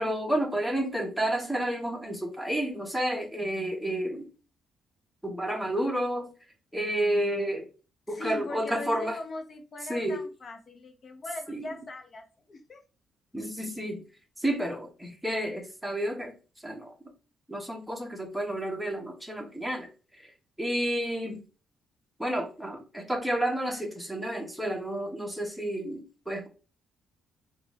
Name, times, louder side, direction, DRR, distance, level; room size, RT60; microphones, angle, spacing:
voice 1, 0.0-4.3 5.2-6.3 6.7-7.7 8.1-9.2 9.9-10.2 11.5-11.6 13.3-14.0 14.4-16.3 16.6-16.9 17.5-19.9 20.2-20.3 20.6-21.4 22.2-26.5, right 1 dB, ahead, 1.2 m, -30 dB
voice 2, 8.1-12.8, left 2 dB, 45° left, 1.0 m, -40 dB
5.0 x 2.5 x 3.2 m
cardioid pair, 90°, 0 cm